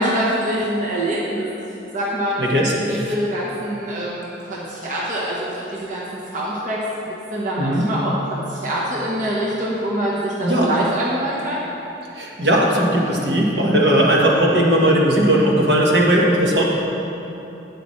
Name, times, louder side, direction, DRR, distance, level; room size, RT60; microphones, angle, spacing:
voice 1, 0.0-1.5 1.9-2.4 2.7-6.0 6.3-6.8 7.3-11.6, right 1 dB, 45° right, -6 dB, 1.2 m, -24 dB
voice 2, 2.4-2.7 3.0-3.1 7.6-7.9 10.4-10.7 12.1-16.7, right 1 dB, 65° right, -3 dB, 1.4 m, -17 dB
11.5 x 8.8 x 3.2 m, 3.0 s
head